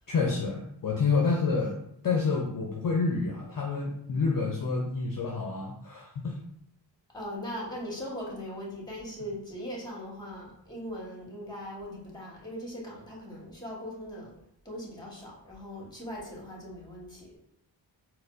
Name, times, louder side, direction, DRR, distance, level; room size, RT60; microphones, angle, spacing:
voice 1, 0.1-1.7 2.0-6.4, left 4 dB, 45° left, -1 dB, 0.5 m, -28 dB
voice 2, 7.1-14.3 14.6-17.4, equal, 10° left, -3 dB, 1.2 m, -40 dB
4.1 x 2.0 x 2.5 m, 0.74 s
cardioid pair, 55°, 47 cm